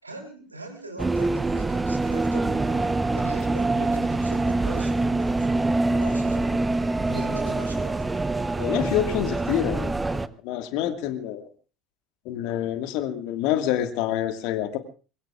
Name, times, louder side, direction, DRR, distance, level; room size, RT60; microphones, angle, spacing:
voice 1, 0.0-6.7 7.1-8.4, right 2 dB, 85° right, 3 dB, 3.1 m, -41 dB
sound 1, 1.0-10.3, right 2 dB, 15° right, 0.9 m, -25 dB
voice 2, 8.6-11.5 12.3-14.8, left 11 dB, 55° left, 8 dB, 1.8 m, -27 dB
24.5 x 22.5 x 2.4 m, 0.36 s
figure-of-eight pair, 65°, 0 cm